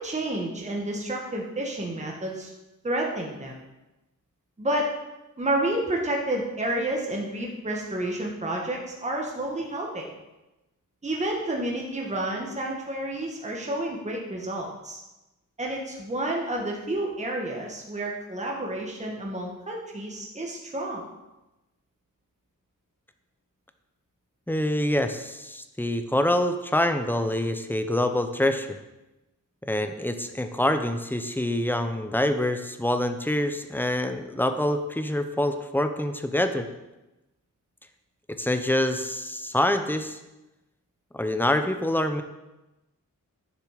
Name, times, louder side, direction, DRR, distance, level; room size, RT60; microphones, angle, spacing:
voice 1, 0.0-2.5 2.8-3.6 4.6-4.9 5.4-10.1 11.0-15.0 15.6-21.0, right 1 dB, 20° right, -1 dB, 1.4 m, -30 dB
voice 2, 24.5-28.8 29.6-36.7 38.3-40.2 41.1-42.2, left 1 dB, 5° left, 8 dB, 0.6 m, -26 dB
10.0 x 6.9 x 4.9 m, 1.0 s
wide cardioid pair, 150°, 33 cm